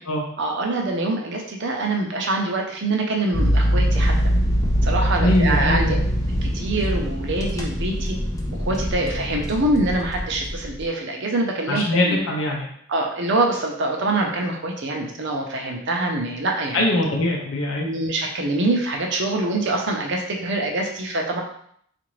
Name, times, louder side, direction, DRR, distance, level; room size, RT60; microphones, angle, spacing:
voice 1, 0.4-4.1 4.8-6.0 6.4-8.2 8.7-12.2 12.9-16.9 17.8-21.4, right 2 dB, 60° right, 1 dB, 0.7 m, -24 dB
sound 1, 3.3-10.9, equal, 15° left, 0.4 m, -23 dB
voice 2, 5.2-6.0 11.7-12.7 16.7-17.9, left 1 dB, 75° left, -2 dB, 0.6 m, -22 dB
3.8 x 2.5 x 3.1 m, 0.66 s
head